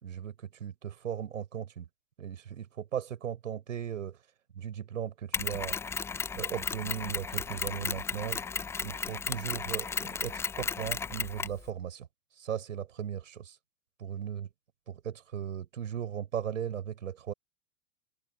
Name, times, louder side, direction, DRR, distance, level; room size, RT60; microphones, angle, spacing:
voice 1, 0.0-1.9 2.2-4.2 4.6-5.8 6.3-12.1 12.4-13.6 14.0-14.5 14.9-17.3, right 9 dB, 65° right, 5.5 m, -37 dB
Mechanisms, 5.3-11.6, left 5 dB, 5° left, 0.5 m, -34 dB
figure-of-eight pair, 100°, 41 cm